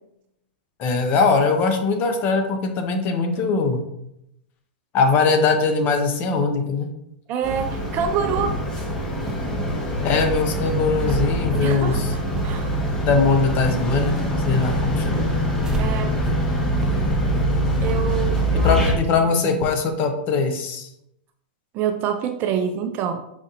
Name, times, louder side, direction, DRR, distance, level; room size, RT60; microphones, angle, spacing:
voice 1, 0.8-3.8 4.9-6.9 10.0-12.1 13.0-14.2 14.5-15.3 18.5-20.9, left 4 dB, 35° left, 5 dB, 0.7 m, -21 dB
voice 2, 7.3-8.6 11.5-12.7 15.8-16.2 17.8-18.8 19.2-19.6 21.7-23.3, right 8 dB, 35° right, 7 dB, 0.3 m, -27 dB
sound 1, 7.4-18.9, equal, 15° left, 1.0 m, -23 dB
sound 2, 9.2-15.8 16.2-16.3 16.7-16.9 17.3-17.4 17.9-18.5 18.9-19.1, right 1 dB, 10° right, 0.7 m, -36 dB
5.0 x 2.6 x 2.5 m, 0.80 s
hypercardioid pair, 115°, 5 cm